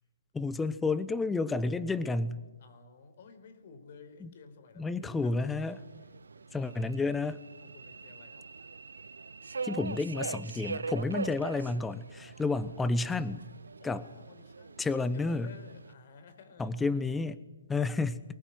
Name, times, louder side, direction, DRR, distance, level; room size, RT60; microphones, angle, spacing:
voice 1, 0.3-2.4 4.2-4.3 4.8-5.8 6.5-7.4 9.6-13.4 13.8-14.0 14.8-15.5 16.6-17.4 17.7-18.2, left 3 dB, 10° left, 15 dB, 0.9 m, -31 dB
voice 2, 2.6-5.5 5.9-6.9 7.6-8.5 13.8-16.8, left 5 dB, 50° left, 8 dB, 4.6 m, -54 dB
Subway metro underground, 5.4-15.9, right 4 dB, 80° right, 0.8 m, -42 dB
23.0 x 20.5 x 9.5 m, 1.2 s
hypercardioid pair, 140°, 0 cm